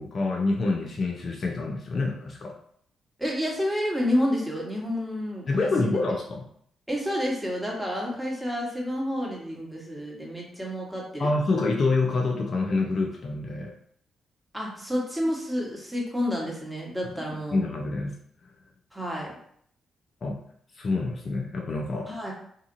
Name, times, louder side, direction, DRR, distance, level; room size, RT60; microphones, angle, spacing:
voice 1, 0.0-2.5 5.5-6.4 11.2-13.7 17.5-18.2 20.2-20.4 20.8-22.1, left 3 dB, 50° left, 0 dB, 0.5 m, -27 dB
voice 2, 3.2-6.0 6.9-11.3 14.5-17.6 18.9-19.3 22.1-22.3, equal, 5° right, -3 dB, 1.2 m, -29 dB
2.8 x 2.4 x 2.6 m, 0.66 s
hypercardioid pair, 45°, 0 cm